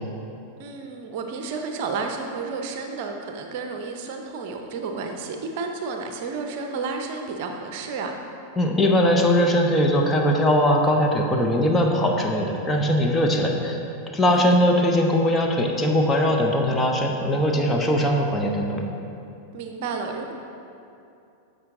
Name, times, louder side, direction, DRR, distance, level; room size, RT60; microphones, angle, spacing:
voice 1, 0.6-8.1 14.3-14.6 19.5-20.3, right 4 dB, 45° right, 4 dB, 0.7 m, -31 dB
voice 2, 8.6-13.8 14.1-18.8, equal, 10° left, 0 dB, 0.9 m, -20 dB
10.5 x 6.7 x 3.8 m, 2.6 s
figure-of-eight pair, 90°, 0 cm